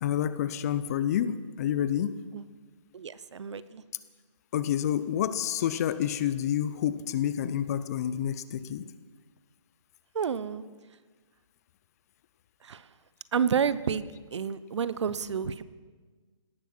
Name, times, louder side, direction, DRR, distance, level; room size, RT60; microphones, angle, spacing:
voice 1, 0.0-2.2 4.5-8.9, left 10 dB, 30° left, 15 dB, 0.7 m, -28 dB
voice 2, 2.9-3.8 10.1-10.6 12.6-12.9 13.3-15.6, right 7 dB, 60° right, 16 dB, 0.9 m, -30 dB
18.0 x 13.0 x 6.1 m, 1.4 s
hypercardioid pair, 155°, 17 cm